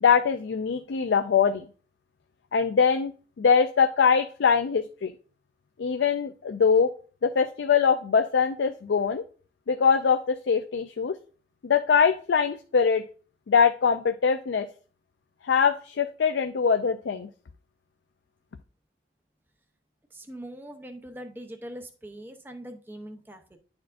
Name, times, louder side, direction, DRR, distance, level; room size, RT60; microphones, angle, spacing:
voice 1, 0.0-1.6 2.5-3.1 3.4-5.1 5.8-6.9 7.2-9.2 9.7-11.2 11.6-13.0 13.5-14.7 15.4-17.3, left 6 dB, 85° left, 8 dB, 0.4 m, -22 dB
voice 2, 20.1-23.6, right 1 dB, 10° right, 5 dB, 0.6 m, -42 dB
10.5 x 4.4 x 2.5 m, 0.40 s
head